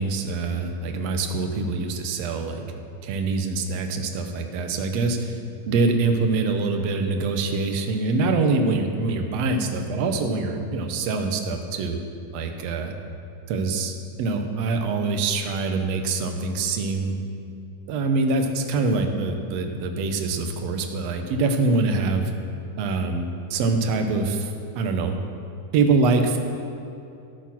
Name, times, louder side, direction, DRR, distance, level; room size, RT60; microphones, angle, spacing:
voice 1, 0.0-2.6 3.0-5.4 5.7-12.0 12.3-12.9 13.5-17.2 17.9-22.3 22.8-24.5 24.8-25.2 25.7-26.4, right 3 dB, 65° right, 5 dB, 1.9 m, -24 dB
14.5 x 8.9 x 6.1 m, 2.7 s
omnidirectional pair, 3.7 m